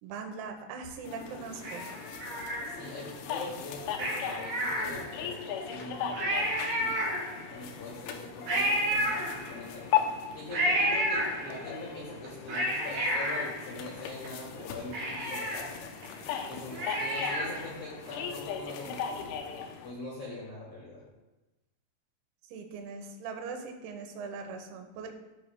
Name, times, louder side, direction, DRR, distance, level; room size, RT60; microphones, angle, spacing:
voice 1, 0.0-2.1 22.5-25.1, right 5 dB, 90° right, 4 dB, 3.7 m, -41 dB
sound 1, 1.0-19.9, left 8 dB, 85° left, 2.8 m, -38 dB
Cat, 1.6-3.1 3.9-5.3 5.8-5.9 6.1-7.6 8.5-9.8 10.5-11.8 12.2-14.3 14.6-14.7 14.9-17.7 18.1-18.2, equal, 55° right, 4.6 m, -31 dB
voice 2, 2.7-7.0 7.5-9.9 10.3-15.7 16.5-19.3 19.8-21.0, left 2 dB, 70° left, -7 dB, 1.8 m, -43 dB
15.0 x 5.6 x 2.2 m, 1.1 s
omnidirectional pair, 6.0 m